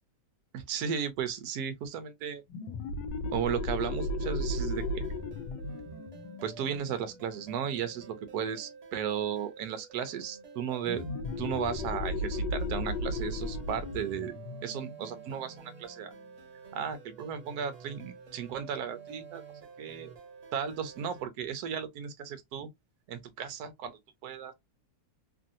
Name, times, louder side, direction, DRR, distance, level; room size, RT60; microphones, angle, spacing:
voice 1, 0.5-2.4 3.2-5.1 6.4-11.0 11.4-14.3 14.6-16.1 16.7-20.1 20.5-22.7 23.1-24.5, right 8 dB, 70° right, 1.0 m, -35 dB
sound 1, 2.5-7.8 10.9-16.1, left 1 dB, 75° left, 1.2 m, -35 dB
sound 2, 4.0-21.2, right 6 dB, 50° right, 1.3 m, -50 dB
3.0 x 2.6 x 2.6 m
omnidirectional pair, 1.9 m